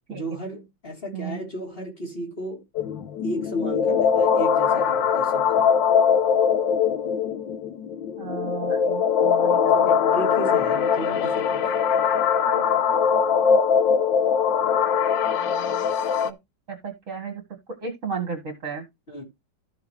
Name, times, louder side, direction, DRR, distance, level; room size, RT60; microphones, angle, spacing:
voice 1, 0.1-2.6 3.2-5.6 9.5-11.8 19.1-19.2, right 1 dB, 30° left, 3.7 m, -34 dB
sound 1, 2.7-16.3, left 7 dB, 85° left, 1.5 m, -21 dB
voice 2, 8.2-10.3 12.4-13.0 13.4-13.6 15.4-15.9 16.2-16.4 16.7-17.4 17.8-18.8, right 5 dB, 45° right, 2.3 m, -35 dB
13.0 x 6.7 x 3.2 m
omnidirectional pair, 2.0 m